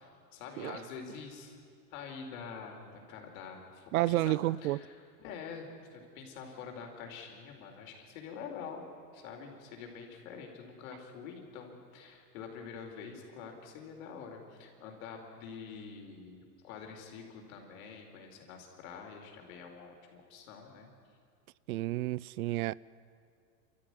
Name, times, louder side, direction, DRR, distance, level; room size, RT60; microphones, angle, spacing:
voice 1, 0.0-1.5 1.9-4.4 4.6-8.9 9.1-20.9, left 6 dB, 60° left, 4.7 m, -46 dB
voice 2, 3.9-4.8 21.7-22.7, right 17 dB, 65° right, 0.6 m, -30 dB
28.0 x 14.0 x 9.8 m
hypercardioid pair, 135°, 47 cm